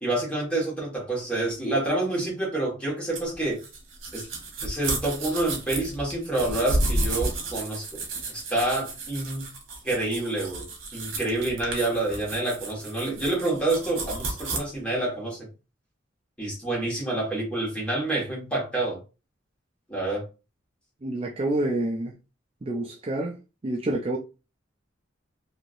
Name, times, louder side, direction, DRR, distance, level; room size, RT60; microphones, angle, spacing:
voice 1, 0.0-3.6 4.1-4.3 4.6-7.9 8.3-9.5 9.8-10.6 10.9-15.5 16.4-19.0 19.9-20.2, right 2 dB, 5° left, 1.6 m, -28 dB
sound 1, 3.1-14.6, right 2 dB, 75° right, 1.1 m, -32 dB
voice 2, 21.0-22.2 22.6-23.3 23.6-24.2, right 1 dB, 30° right, 0.5 m, -28 dB
3.2 x 2.9 x 2.6 m
head